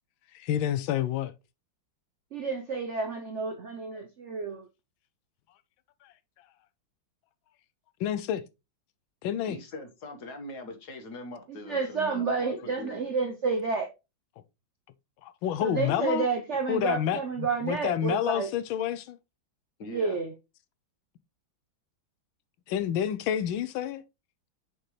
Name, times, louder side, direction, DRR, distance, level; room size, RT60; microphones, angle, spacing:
voice 1, 0.3-1.3 6.0-6.1 8.0-8.4 9.2-9.6 15.2-16.3 16.7-19.2 22.7-24.0, left 10 dB, 85° left, 1.4 m, -29 dB
voice 2, 2.3-4.7 11.6-13.9 15.6-18.5 19.9-20.3, right 4 dB, 60° right, 0.7 m, -30 dB
voice 3, 9.5-13.0 19.8-20.2, left 2 dB, 55° left, 1.9 m, -42 dB
6.6 x 5.5 x 3.1 m
omnidirectional pair, 2.1 m